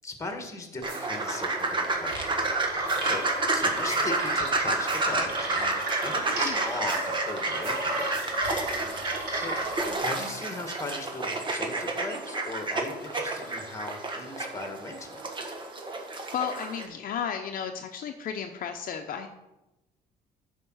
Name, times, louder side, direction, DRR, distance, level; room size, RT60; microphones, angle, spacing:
voice 1, 0.0-8.1 8.9-9.5 10.0-15.2, left 2 dB, 15° left, 5 dB, 1.8 m, -38 dB
sound 1, 0.8-16.9, right 2 dB, 30° right, 1.5 m, -30 dB
sound 2, 0.9-1.3 2.9-3.3 3.9-4.3 4.9-5.3 6.9-7.3 7.6-8.5, right 4 dB, 55° right, 2.9 m, -49 dB
sound 3, 2.0-10.0, right 1 dB, 85° right, 3.4 m, -33 dB
voice 2, 16.3-19.3, left 7 dB, 55° left, 5 dB, 0.8 m, -33 dB
9.8 x 5.2 x 6.3 m, 0.97 s
cardioid pair, 110°, 17 cm